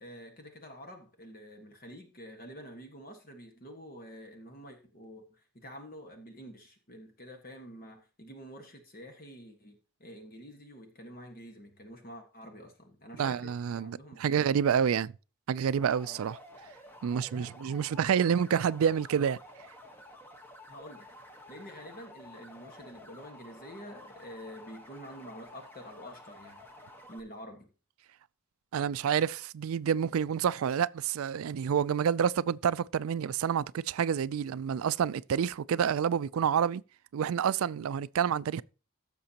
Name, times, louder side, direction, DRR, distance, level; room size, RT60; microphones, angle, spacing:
voice 1, 0.0-14.7 16.0-16.3 17.1-17.8 20.7-21.1 21.5-26.6 27.1-27.7, equal, 40° left, 1.5 m, -48 dB
voice 2, 13.2-15.1 15.5-16.4 17.0-19.4 28.7-36.8 37.1-38.6, right 7 dB, 80° right, 0.3 m, -28 dB
sound 1, 15.8-27.2, left 1 dB, 10° left, 1.2 m, -51 dB
15.5 x 6.7 x 2.9 m
head